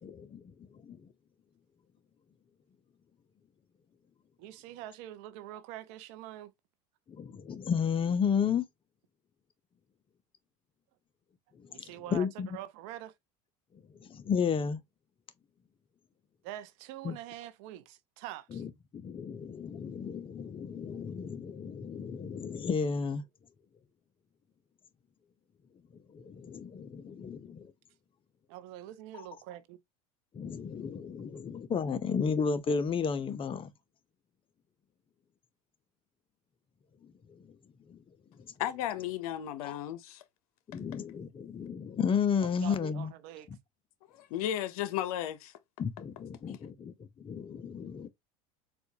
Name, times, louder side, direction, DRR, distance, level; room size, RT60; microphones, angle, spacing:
voice 1, 0.0-1.1 7.1-8.7 11.6-12.6 13.9-14.8 17.0-17.2 18.5-23.2 26.1-27.7 30.3-33.7 37.0-37.5 37.9-38.0 38.4-38.5 39.6-39.8 40.7-43.1 45.8-48.1, left 6 dB, 30° left, 0.6 m, -33 dB
voice 2, 4.4-6.5 11.7-12.3 12.5-13.1 16.4-18.6 28.5-29.8 42.4-43.5, right 13 dB, 65° right, 0.6 m, -45 dB
voice 3, 38.6-40.2 44.2-45.5 46.4-46.6, left 11 dB, 75° left, 0.6 m, -34 dB
4.2 x 2.3 x 2.7 m
hypercardioid pair, 90°, 19 cm